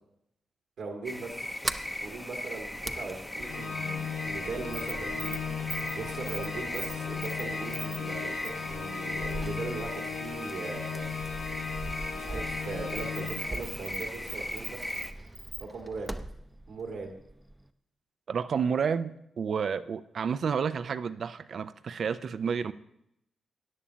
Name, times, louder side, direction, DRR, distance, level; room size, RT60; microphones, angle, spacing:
voice 1, 0.8-1.5 2.0-11.1 12.1-15.2 15.6-16.2 16.7-17.1, right 3 dB, 80° right, 0 dB, 1.9 m, -39 dB
sound 1, 1.0-15.1, left 1 dB, 15° left, 0.8 m, -39 dB
Sliding door, 1.3-17.7, right 1 dB, 15° right, 0.6 m, -42 dB
Organ, 3.4-14.0, left 6 dB, 75° left, 1.5 m, -37 dB
voice 2, 18.3-22.7, right 6 dB, 65° right, 13 dB, 0.4 m, -30 dB
14.0 x 10.0 x 2.8 m, 0.79 s
supercardioid pair, 50°, 0 cm